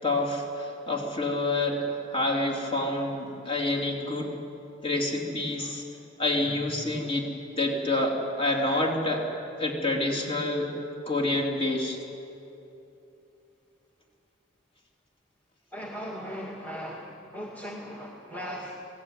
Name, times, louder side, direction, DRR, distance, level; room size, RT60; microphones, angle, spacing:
voice 1, 0.0-4.3 4.8-5.8 6.2-7.3 7.6-9.3 9.6-10.7 11.1-12.0, left 2 dB, 30° left, 0 dB, 3.7 m, -28 dB
voice 2, 15.7-18.9, equal, 10° left, -1 dB, 2.0 m, -38 dB
25.5 x 18.0 x 8.8 m, 2.9 s
head